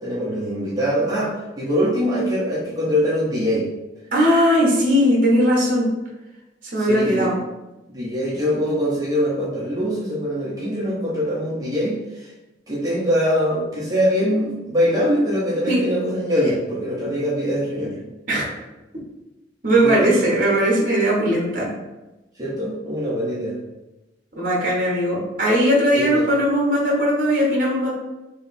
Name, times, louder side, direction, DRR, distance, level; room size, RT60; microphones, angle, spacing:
voice 1, 0.0-3.7 6.7-7.3 7.9-12.3 12.7-18.0 19.8-20.1 22.4-23.6 25.9-26.3, equal, 20° right, -8 dB, 1.2 m, -23 dB
voice 2, 4.1-5.9 6.6-7.3 15.7-15.8 18.3-18.5 19.6-21.7 24.3-27.9, equal, 45° right, -3 dB, 1.2 m, -19 dB
3.4 x 3.3 x 4.1 m, 1.0 s
head